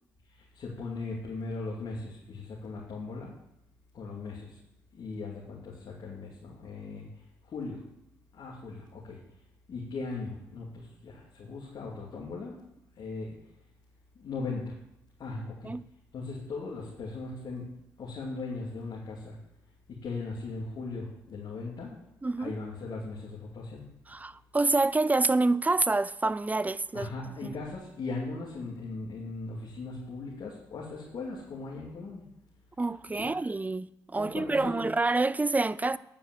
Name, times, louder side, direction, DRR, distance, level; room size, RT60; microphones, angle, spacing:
voice 1, 0.4-3.3 3.9-4.6 4.9-7.1 7.4-7.8 8.3-9.2 9.7-12.6 13.0-13.4 14.1-14.7 15.2-15.7 16.1-17.7 18.0-19.4 19.9-22.0 22.4-23.9 26.9-32.3 33.1-33.4 34.2-34.8, left 3 dB, 60° left, 2.8 m, -38 dB
voice 2, 22.2-22.5 24.1-27.5 32.8-36.0, right 3 dB, 20° right, 0.5 m, -27 dB
9.8 x 6.9 x 7.7 m
supercardioid pair, 55°, 8 cm